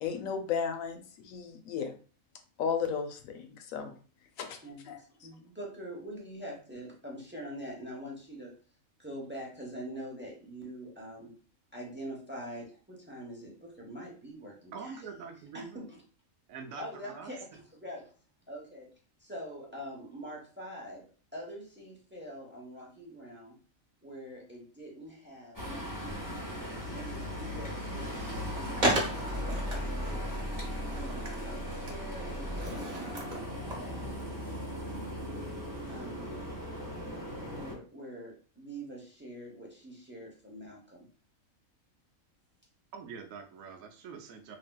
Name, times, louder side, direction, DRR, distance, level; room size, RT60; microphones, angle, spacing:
voice 1, 0.0-1.9 2.6-3.9 4.4-4.6 4.8-5.0, left 6 dB, 75° left, 6 dB, 1.0 m, -34 dB
voice 2, 4.6-8.5 9.0-11.3 11.7-15.0 15.5-16.0 16.8-18.1 18.5-18.9 19.2-21.0 21.3-23.6 24.0-26.5 26.9-30.3 30.8-34.1 34.4-35.2 35.9-36.5 37.5-41.1, equal, 15° right, -2 dB, 0.4 m, -45 dB
voice 3, 14.7-15.8 16.5-17.3 42.9-44.6, right 5 dB, 75° right, 4 dB, 1.0 m, -44 dB
sound 1, 25.5-37.7, equal, 20° left, 0.7 m, -37 dB
Skateboard, 28.8-34.3, right 1 dB, 40° right, 0.8 m, -35 dB
3.3 x 2.6 x 2.2 m, 0.39 s
omnidirectional pair, 1.5 m